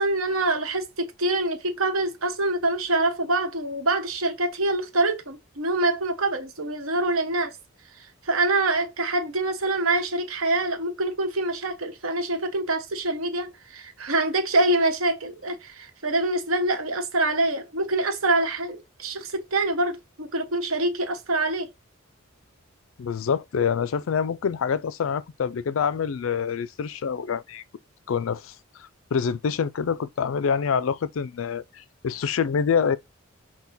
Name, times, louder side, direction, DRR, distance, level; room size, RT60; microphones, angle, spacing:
voice 1, 0.0-7.6 7.9-21.7, right 2 dB, 90° right, 1.1 m, -25 dB
voice 2, 23.0-27.6 28.1-28.5 28.8-33.0, left 6 dB, 70° left, 0.4 m, -26 dB
6.0 x 2.2 x 4.0 m
head